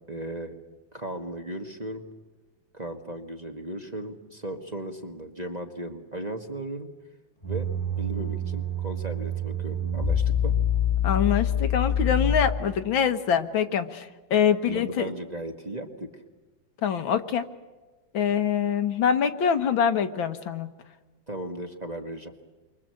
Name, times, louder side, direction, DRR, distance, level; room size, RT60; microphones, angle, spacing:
voice 1, 0.1-0.5 0.9-2.0 2.7-6.9 7.4-7.7 8.0-10.5 14.6-16.2 21.3-22.3, right 1 dB, 25° right, 3 dB, 1.3 m, -36 dB
sound 1, 7.4-12.9, left 4 dB, 15° left, 1.5 m, -26 dB
voice 2, 11.0-15.1 16.8-17.4 18.1-20.7, left 7 dB, 75° left, 8 dB, 2.0 m, -24 dB
29.5 x 24.0 x 7.7 m, 1.2 s
omnidirectional pair, 2.2 m